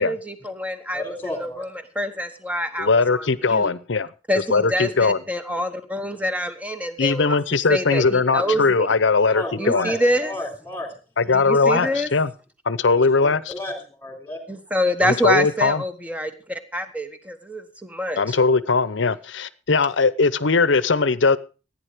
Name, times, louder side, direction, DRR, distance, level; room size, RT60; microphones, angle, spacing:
voice 1, 0.0-1.0 1.4-1.7 1.9-3.7 4.3-7.4 7.7-8.9 9.6-10.3 11.3-12.1 14.5-18.4, equal, 5° right, 1.2 m, -26 dB
voice 2, 0.9-1.6 9.3-10.9 11.6-11.9 13.0-14.4, left 1 dB, 10° left, 3.5 m, -33 dB
voice 3, 2.8-4.1 4.5-5.2 7.0-9.9 11.2-12.3 12.6-13.5 15.0-15.8 18.2-21.4, left 4 dB, 65° left, 0.8 m, -20 dB
15.5 x 9.8 x 5.0 m
head